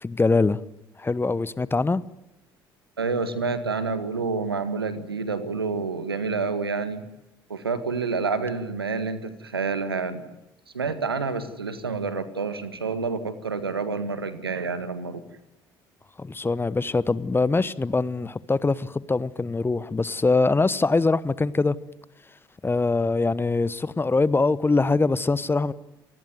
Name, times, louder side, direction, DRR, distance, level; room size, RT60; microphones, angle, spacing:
voice 1, 0.0-0.6 1.0-2.0 16.2-21.7 22.6-25.7, left 3 dB, 20° left, 1.1 m, -23 dB
voice 2, 3.0-7.0 7.5-10.2 10.7-15.2, right 4 dB, 85° right, 1.8 m, -28 dB
27.0 x 20.0 x 9.6 m
figure-of-eight pair, 55°, 12 cm